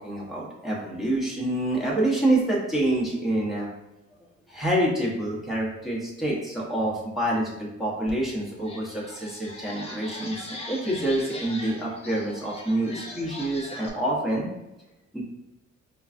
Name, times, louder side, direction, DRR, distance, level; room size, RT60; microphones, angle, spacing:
voice 1, 0.0-3.7 4.5-14.5 15.1-15.2, right 1 dB, ahead, -5 dB, 1.0 m, -27 dB
sound 1, 8.1-8.2 8.6-13.9, left 2 dB, 20° left, 0.7 m, -40 dB
4.6 x 2.3 x 2.5 m, 0.97 s
cardioid pair, 90°, 30 cm